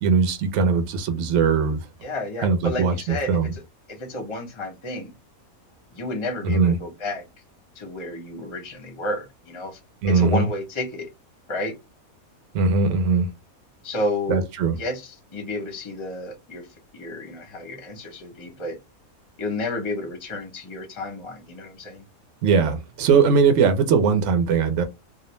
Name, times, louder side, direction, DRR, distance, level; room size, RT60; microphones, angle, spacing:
voice 1, 0.0-1.8 2.4-3.5 6.4-6.8 10.0-10.5 12.5-13.3 14.3-14.7 22.4-24.8, right 5 dB, 65° right, 0.9 m, -20 dB
voice 2, 2.0-3.6 3.9-5.1 5.9-7.2 7.8-11.1 11.5-11.7 13.8-14.4 14.7-16.7 16.9-18.8 19.4-22.0, left 2 dB, 30° left, 0.5 m, -31 dB
2.5 x 2.1 x 3.0 m
omnidirectional pair, 1.5 m